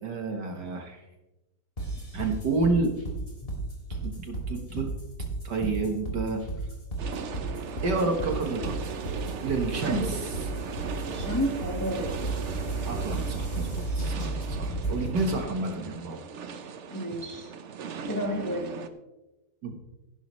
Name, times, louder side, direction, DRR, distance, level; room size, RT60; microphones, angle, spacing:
voice 1, 0.0-1.0 2.1-2.9 4.0-4.9 5.4-6.4 7.8-8.8 9.4-10.4 12.9-13.7 14.0-16.2 19.6-19.8, right 3 dB, 55° right, 4 dB, 1.8 m, -29 dB
sound 1, 1.8-15.3, right 2 dB, 25° left, 3.1 m, -33 dB
sound 2, 7.0-18.9, right 5 dB, 80° right, 0.6 m, -38 dB
voice 2, 9.8-10.2 11.1-12.1 16.9-17.5 18.1-18.8, equal, 10° left, 1 dB, 1.4 m, -31 dB
16.0 x 11.5 x 3.1 m, 1.0 s
omnidirectional pair, 2.3 m